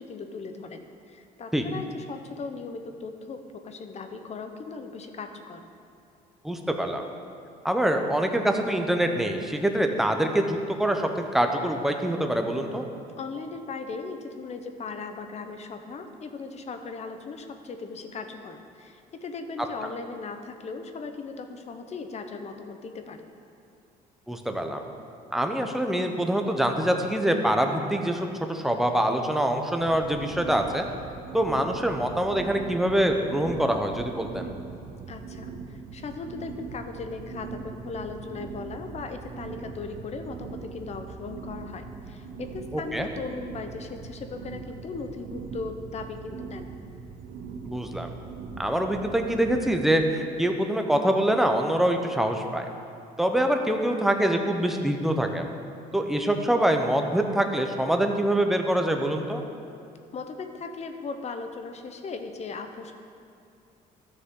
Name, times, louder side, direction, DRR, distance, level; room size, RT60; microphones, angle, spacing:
voice 1, 0.0-5.6 13.2-23.2 35.1-46.7 60.1-62.9, left 4 dB, 40° left, 7 dB, 0.8 m, -38 dB
voice 2, 6.4-7.0 7.6-12.8 24.3-24.8 25.3-30.9 31.3-34.5 42.7-43.1 47.6-48.1 48.6-52.6 53.2-55.5 55.9-59.4, right 1 dB, ahead, 4 dB, 0.8 m, -25 dB
sound 1, 29.8-49.8, right 5 dB, 65° right, 0.8 m, -41 dB
13.0 x 6.6 x 3.8 m, 2.5 s
cardioid pair, 110°, 17 cm